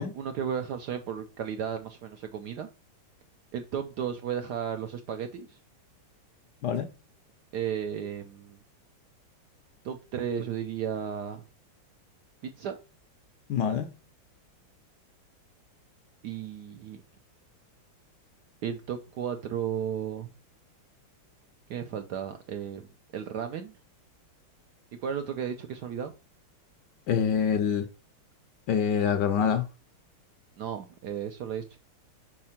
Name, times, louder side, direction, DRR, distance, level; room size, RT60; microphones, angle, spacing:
voice 1, 0.0-2.7 3.5-5.6 7.5-8.6 9.8-11.4 12.4-12.8 16.2-17.0 18.6-20.3 21.7-22.9 23.1-23.7 25.0-26.1 30.6-31.8, right 8 dB, 70° right, 1.0 m, -34 dB
voice 2, 13.5-13.9 27.1-27.8 28.7-29.6, left 7 dB, 70° left, 1.1 m, -25 dB
4.7 x 4.2 x 5.7 m
omnidirectional pair, 2.3 m